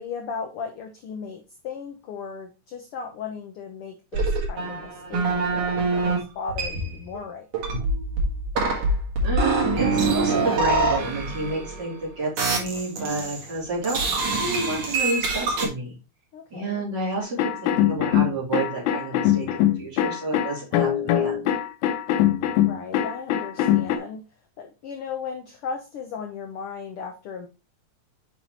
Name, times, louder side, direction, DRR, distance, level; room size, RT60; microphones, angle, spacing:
voice 1, 0.0-7.8 16.3-16.9 22.1-24.3 24.6-27.5, left 5 dB, 70° left, 4 dB, 1.4 m, -36 dB
sound 1, 4.1-6.2 6.5-7.2 7.5-12.0 12.4-13.5 13.8-15.7, right 3 dB, 90° right, 3.1 m, -25 dB
voice 2, 9.2-15.9 16.5-21.5, right 3 dB, 35° right, -6 dB, 4.1 m, -30 dB
sound 2, 17.4-24.0, left 11 dB, 90° left, 2.1 m, -22 dB
7.3 x 5.3 x 3.0 m, 0.28 s
omnidirectional pair, 3.3 m